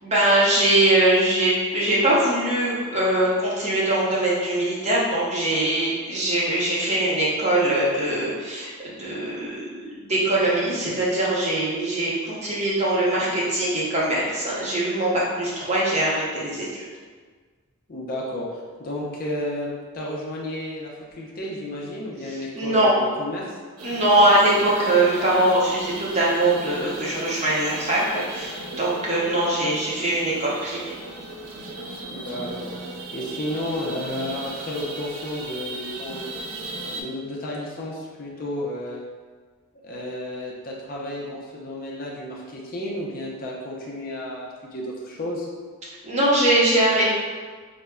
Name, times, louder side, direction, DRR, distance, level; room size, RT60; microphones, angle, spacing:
voice 1, 0.0-16.7 22.5-22.9 23.8-30.9 46.0-47.0, right 1 dB, 30° right, -6 dB, 0.7 m, -22 dB
voice 2, 17.9-18.5 18.8-23.5 32.1-32.7 33.1-36.3 36.9-39.0 39.8-45.5, left 1 dB, 40° left, -3 dB, 0.5 m, -32 dB
sound 1, 23.8-37.0, right 2 dB, 80° right, 0.5 m, -37 dB
5.0 x 2.0 x 2.2 m, 1.5 s
head